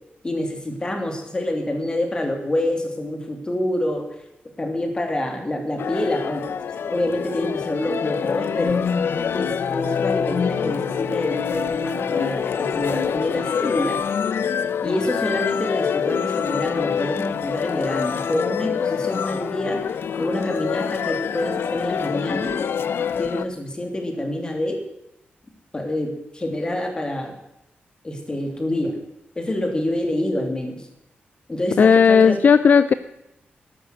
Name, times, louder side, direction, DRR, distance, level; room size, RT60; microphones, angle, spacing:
voice 1, 0.2-4.1 4.6-6.4 6.8-8.8 9.3-14.0 14.8-19.8 20.2-22.6 23.2-24.8 25.7-27.3 28.0-29.0 29.4-30.8 31.5-32.4, left 1 dB, 20° left, 4 dB, 2.9 m, -26 dB
sound 1, 5.8-23.4, left 7 dB, 80° left, 0.8 m, -25 dB
voice 2, 31.8-32.9, left 6 dB, 50° left, 14 dB, 0.5 m, -14 dB
13.5 x 12.0 x 7.9 m, 0.89 s
wide cardioid pair, 160°, 4 cm